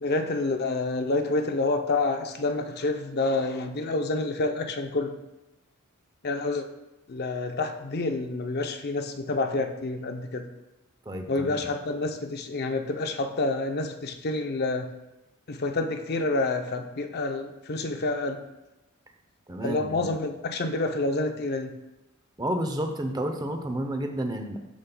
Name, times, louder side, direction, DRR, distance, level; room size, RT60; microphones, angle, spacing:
voice 1, 0.0-5.2 6.2-6.6 7.1-10.5 11.3-14.9 15.5-18.4 19.6-21.7, left 2 dB, 45° left, 6 dB, 0.6 m, -28 dB
voice 2, 11.1-11.6 19.5-20.2 22.4-24.6, right 1 dB, 20° right, 5 dB, 0.6 m, -31 dB
12.5 x 5.2 x 2.2 m, 0.95 s
head